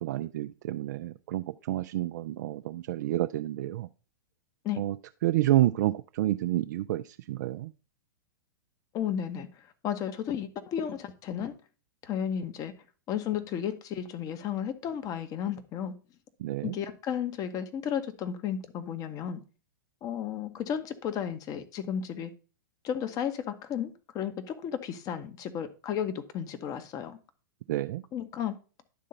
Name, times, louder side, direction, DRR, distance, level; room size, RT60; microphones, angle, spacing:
voice 1, 0.0-3.9 4.8-5.0 5.2-7.7 16.4-16.7 27.7-28.0, right 14 dB, 60° right, 9 dB, 0.4 m, -29 dB
voice 2, 8.9-9.5 9.8-11.5 12.0-12.7 13.1-15.9 16.6-19.4 20.0-22.3 22.8-27.2 28.1-28.5, left 9 dB, 35° left, 11 dB, 1.1 m, -33 dB
11.0 x 3.8 x 5.4 m, 0.35 s
hypercardioid pair, 110°, 11 cm